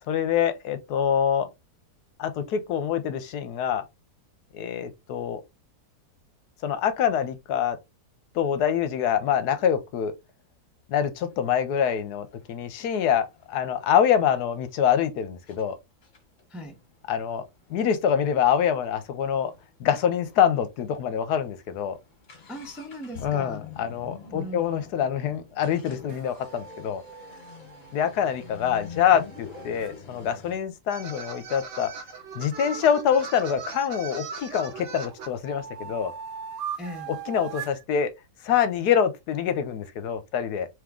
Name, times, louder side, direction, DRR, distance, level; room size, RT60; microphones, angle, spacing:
voice 1, 0.1-1.5 2.2-3.8 4.5-5.4 6.6-7.8 8.3-10.1 10.9-15.8 17.1-17.4 17.7-19.5 19.8-22.0 23.2-27.0 27.9-31.9 32.4-36.1 37.3-38.1 38.4-40.7, left 8 dB, 80° left, 1.2 m, -25 dB
sound 1, 11.2-11.3 11.8-14.4 15.0-15.1 15.5-15.6 16.0-19.7 20.0-20.1 20.3-20.4 21.0-21.1 21.4-30.6, left 6 dB, 50° left, 1.4 m, -46 dB
voice 2, 22.5-23.7 24.3-24.8 36.8-37.1, equal, ahead, 0.5 m, -38 dB
sound 2, 26.1-29.9 32.9-34.1 34.6-37.8, right 8 dB, 70° right, 1.0 m, -41 dB
sound 3, 30.9-35.3, right 5 dB, 55° right, 0.7 m, -39 dB
3.5 x 3.1 x 3.6 m
omnidirectional pair, 1.8 m